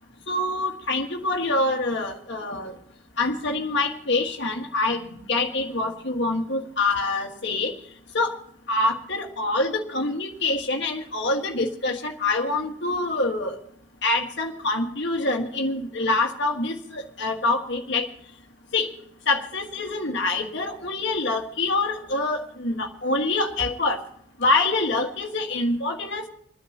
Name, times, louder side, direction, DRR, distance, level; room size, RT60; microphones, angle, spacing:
voice 1, 0.3-2.8 3.2-7.7 8.1-8.4 8.7-13.6 14.0-18.1 18.7-18.9 19.3-24.1 24.4-26.3, left 2 dB, 60° left, 2 dB, 1.7 m, -25 dB
28.0 x 10.0 x 2.9 m, 0.70 s
head